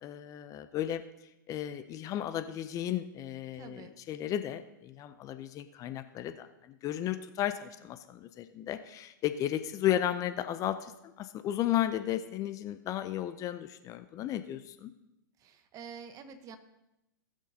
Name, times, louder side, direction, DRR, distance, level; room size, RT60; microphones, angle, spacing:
voice 1, 0.0-1.0 1.5-10.9 11.2-14.9, left 12 dB, 30° left, 10 dB, 0.5 m, -34 dB
voice 2, 3.5-3.9 15.4-16.6, right 6 dB, 30° right, 9 dB, 1.0 m, -47 dB
19.0 x 6.3 x 2.8 m, 0.90 s
hypercardioid pair, 115°, 11 cm